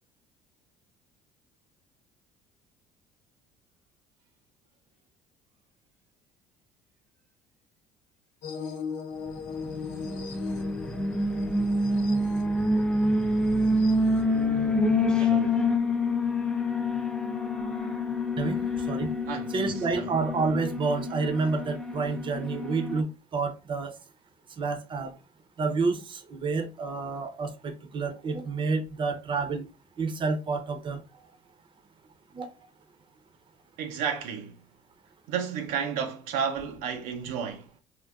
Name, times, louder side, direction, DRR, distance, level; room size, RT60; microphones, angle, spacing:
sound 1, 8.4-14.4, left 5 dB, 85° left, 0.8 m, -39 dB
Alarm, 9.6-23.0, left 1 dB, 5° left, 0.4 m, -27 dB
voice 1, 15.2-15.6 19.3-20.1 33.8-34.5 35.3-37.7, right 7 dB, 75° right, 0.5 m, -32 dB
voice 2, 18.4-19.1 19.5-23.9 24.6-25.1 25.6-29.6 30.0-31.3 32.3-32.6, right 4 dB, 35° right, 0.7 m, -29 dB
3.6 x 2.4 x 2.2 m
supercardioid pair, 95°, 14 cm